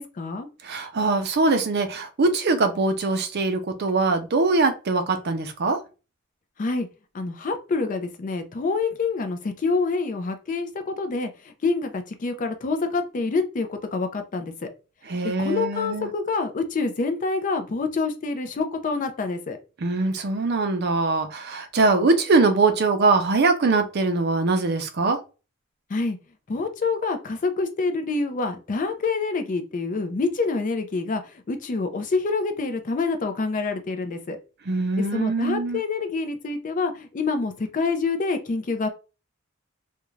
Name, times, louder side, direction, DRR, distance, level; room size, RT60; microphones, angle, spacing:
voice 1, 0.0-0.5 6.6-6.9 7.1-14.7 15.4-19.6 25.9-26.2 26.5-34.4 35.0-38.9, left 3 dB, 40° left, 7 dB, 0.4 m, -27 dB
voice 2, 0.6-5.8 15.1-16.1 19.8-25.2 34.7-35.8, right 3 dB, 50° right, 7 dB, 0.5 m, -22 dB
2.4 x 2.2 x 3.0 m, 0.32 s
head